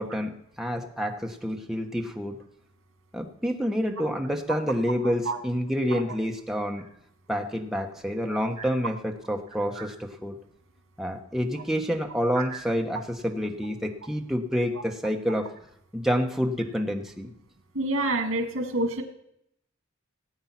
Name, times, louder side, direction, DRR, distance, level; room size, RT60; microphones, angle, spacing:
voice 1, 0.0-2.4 3.1-6.8 7.3-10.4 11.0-15.5 15.9-17.3, equal, ahead, 2 dB, 1.1 m, -28 dB
voice 2, 17.7-19.0, right 2 dB, 80° right, 5 dB, 2.1 m, -28 dB
17.0 x 8.7 x 5.9 m, 0.75 s
head